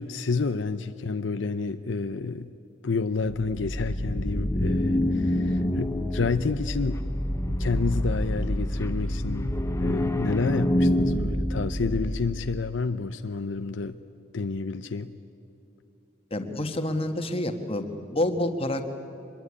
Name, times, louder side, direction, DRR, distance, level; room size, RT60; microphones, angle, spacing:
voice 1, 0.0-2.5 2.8-7.0 7.5-9.5 9.8-14.0 14.3-15.1, left 4 dB, 70° left, 10 dB, 0.7 m, -29 dB
sound 1, 3.3-12.6, left 1 dB, 15° left, 0.8 m, -27 dB
voice 2, 16.3-18.8, left 1 dB, 30° left, 6 dB, 1.7 m, -28 dB
24.5 x 21.5 x 9.7 m, 2.9 s
head